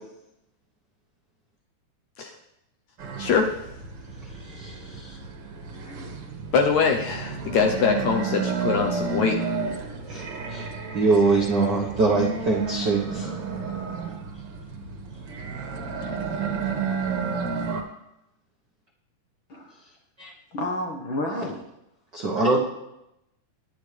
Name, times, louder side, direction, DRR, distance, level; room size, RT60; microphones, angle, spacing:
sound 1, 3.0-17.8, right 5 dB, 50° right, 2.0 m, -31 dB
voice 1, 3.2-3.5 6.5-9.4, left 5 dB, 70° left, 3 dB, 1.8 m, -23 dB
voice 2, 4.5-5.2 10.1-10.7 10.9-13.3 20.2-20.3 22.1-22.6, right 3 dB, 75° right, -2 dB, 1.0 m, -23 dB
voice 3, 20.5-21.6, left 1 dB, 50° left, 1 dB, 1.5 m, -30 dB
21.0 x 10.5 x 3.4 m, 0.86 s
omnidirectional pair, 4.1 m